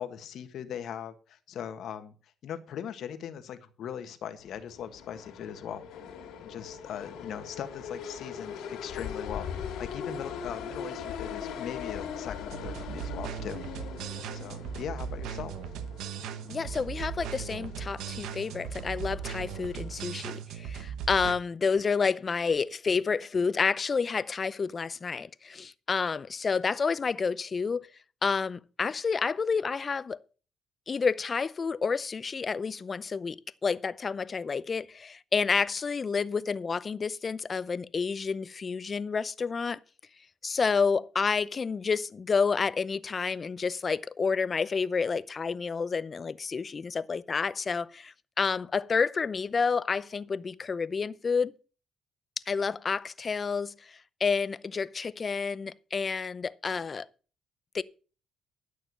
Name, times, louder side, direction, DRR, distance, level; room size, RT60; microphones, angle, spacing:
voice 1, 0.0-5.8 6.4-9.5 9.8-13.6 14.3-15.5, left 9 dB, 75° left, 1.5 m, -40 dB
sound 1, 4.4-20.3, left 7 dB, 90° left, 2.5 m, -41 dB
sound 2, 12.5-21.3, right 8 dB, 90° right, 1.0 m, -38 dB
voice 2, 16.5-27.9 28.2-30.2 30.9-39.8 40.4-51.5 52.5-57.1 57.7-57.8, left 5 dB, 40° left, 0.6 m, -29 dB
12.0 x 6.6 x 6.3 m
cardioid pair, 90°, 0 cm